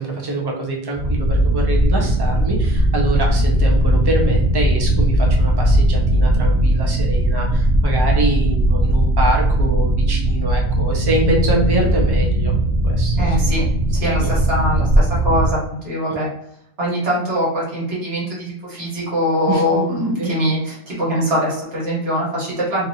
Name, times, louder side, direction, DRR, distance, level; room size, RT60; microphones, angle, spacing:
voice 1, 0.0-12.5 12.8-13.4 14.2-14.3 19.5-19.8 20.2-20.3, right 1 dB, 30° right, -1 dB, 0.6 m, -24 dB
sound 1, 0.9-15.6, right 1 dB, 85° right, 0.9 m, -18 dB
voice 2, 13.2-13.6 13.9-16.3 16.8-22.9, equal, 70° right, -6 dB, 1.4 m, -22 dB
2.7 x 2.5 x 2.7 m, 0.72 s
omnidirectional pair, 1.1 m